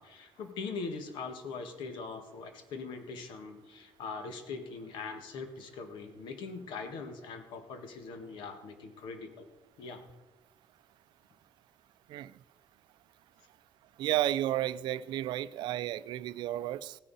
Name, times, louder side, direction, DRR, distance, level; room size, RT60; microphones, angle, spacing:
voice 1, 0.0-9.5 9.8-10.0, left 4 dB, 90° left, 1.5 m, -41 dB
voice 2, 14.0-17.0, right 13 dB, 70° right, 0.4 m, -32 dB
16.0 x 10.0 x 4.1 m
cardioid pair, 170°, 8 cm